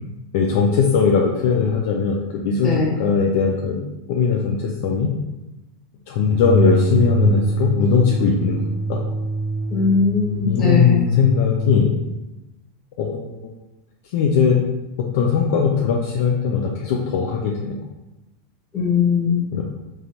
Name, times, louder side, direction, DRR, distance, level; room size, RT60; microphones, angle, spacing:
voice 1, 0.3-2.7 3.0-3.8 4.1-5.1 6.1-8.6 8.9-9.0 10.4-11.9 13.0-13.5 14.1-14.6 15.0-17.8 19.5-19.6, left 5 dB, 55° left, 0 dB, 0.4 m, -19 dB
voice 2, 2.6-3.0 9.7-11.0 18.7-19.4, left 5 dB, 30° left, -4 dB, 1.5 m, -19 dB
sound 1, 6.3-11.9, left 1 dB, 15° right, 0.6 m, -23 dB
3.7 x 3.1 x 2.9 m, 1.0 s
figure-of-eight pair, 85°, 0 cm